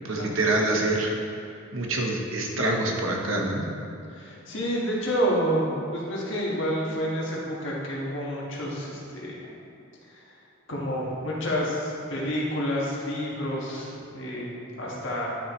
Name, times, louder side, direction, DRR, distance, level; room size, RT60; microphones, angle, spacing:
voice 1, 0.0-1.1 1.7-3.7, right 2 dB, 80° right, 0 dB, 1.1 m, -26 dB
voice 2, 4.1-9.5 10.1-10.2 10.7-15.3, equal, 65° left, -4 dB, 1.7 m, -29 dB
10.0 x 6.1 x 3.2 m, 2.6 s
head